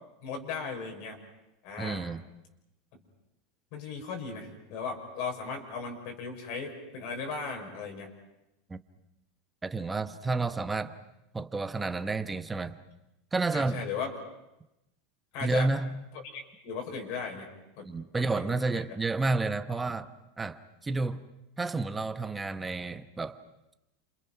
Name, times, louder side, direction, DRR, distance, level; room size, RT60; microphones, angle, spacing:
voice 1, 0.2-1.2 1.6-2.0 2.9-3.0 3.7-8.1 13.5-14.1 15.3-15.7 16.3-17.5 17.8-17.9 18.3-18.8, left 5 dB, 55° left, 2 dB, 6.1 m, -37 dB
voice 2, 1.8-2.2 8.7-8.8 9.6-11.0 11.3-12.8 13.3-13.9 15.4-15.9 17.8-20.1 20.4-21.3 21.6-23.4, right 3 dB, 10° right, 10 dB, 1.0 m, -30 dB
30.0 x 27.5 x 6.0 m, 0.91 s
supercardioid pair, 155°, 0 cm